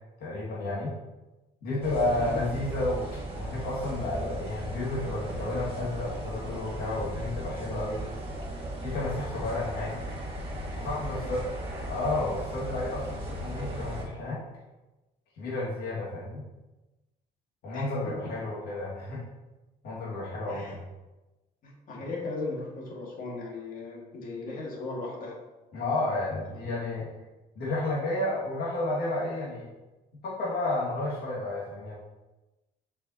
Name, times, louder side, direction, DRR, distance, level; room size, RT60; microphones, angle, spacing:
voice 1, 0.2-0.9 1.6-8.0 8.8-10.0 10.8-11.5 11.9-14.4 15.4-16.4 17.6-19.2 19.8-20.8 25.7-27.1 27.6-29.7 30.2-31.9, left 2 dB, 70° left, -6 dB, 1.9 m, -31 dB
sound 1, 1.8-14.0, right 1 dB, 30° right, 1.7 m, -37 dB
voice 2, 11.0-11.3 17.7-18.3 20.5-20.8 21.6-25.4 26.5-26.6, left 3 dB, 55° left, -2 dB, 1.9 m, -38 dB
6.9 x 5.5 x 2.8 m, 1.1 s
cardioid pair, 110°, 17 cm